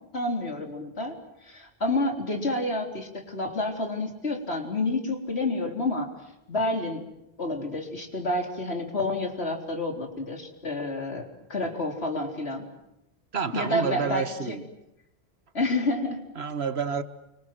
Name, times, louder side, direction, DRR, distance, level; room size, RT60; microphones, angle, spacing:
voice 1, 0.1-6.1 6.5-7.0 7.4-12.6 13.5-14.6 15.5-16.2, left 2 dB, 90° left, 3 dB, 4.4 m, -29 dB
voice 2, 13.3-14.6 16.4-17.0, right 6 dB, 80° right, 11 dB, 1.7 m, -29 dB
30.0 x 25.0 x 7.9 m, 0.85 s
omnidirectional pair, 1.1 m